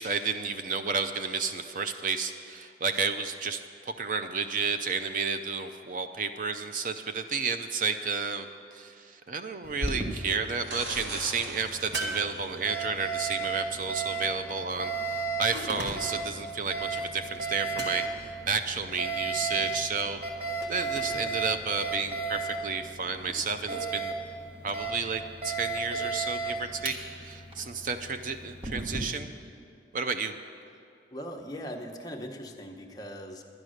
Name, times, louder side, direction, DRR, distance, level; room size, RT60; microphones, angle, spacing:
voice 1, 0.0-8.5 8.7-20.2 20.7-24.1 24.6-27.0 27.2-29.3 29.9-30.3, right 5 dB, 45° right, 8 dB, 0.5 m, -31 dB
Alarm, 9.6-29.0, right 3 dB, 30° right, 1.2 m, -35 dB
sound 1, 10.6-12.9 17.1-17.2, right 2 dB, 85° right, 1.6 m, -41 dB
sound 2, 11.9-13.0 15.5-16.3 17.7-18.3 20.6-21.3, right 2 dB, 70° right, 1.5 m, -37 dB
voice 2, 31.1-33.4, equal, 20° left, 2 dB, 0.8 m, -40 dB
10.5 x 10.5 x 6.4 m, 2.5 s
head